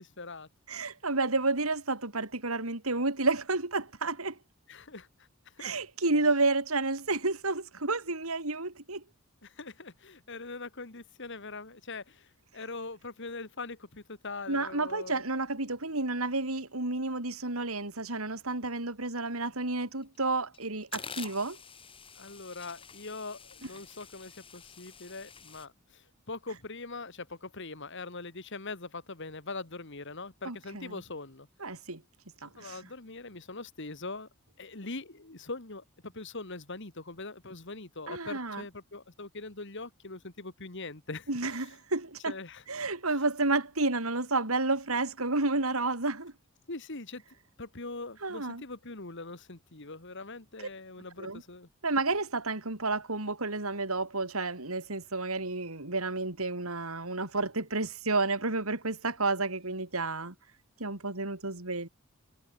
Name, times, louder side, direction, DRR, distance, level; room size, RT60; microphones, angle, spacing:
voice 1, 0.0-0.5 4.7-5.1 5.6-5.7 9.4-12.3 12.5-15.2 22.2-31.5 32.6-34.3 34.6-41.3 42.3-42.6 46.7-47.2 47.6-51.7, left 3 dB, 60° left, 2.5 m, -42 dB
voice 2, 0.7-4.4 5.6-9.0 14.5-21.6 30.4-31.0 31.6-32.0 32.4-32.8 38.1-38.6 41.3-42.3 42.7-46.3 48.2-48.6 51.2-51.4 51.8-60.3 60.8-61.9, right 3 dB, 90° right, 4.1 m, -31 dB
sound 1, 20.0-20.2 20.5-25.7, left 6 dB, 25° left, 4.6 m, -47 dB
head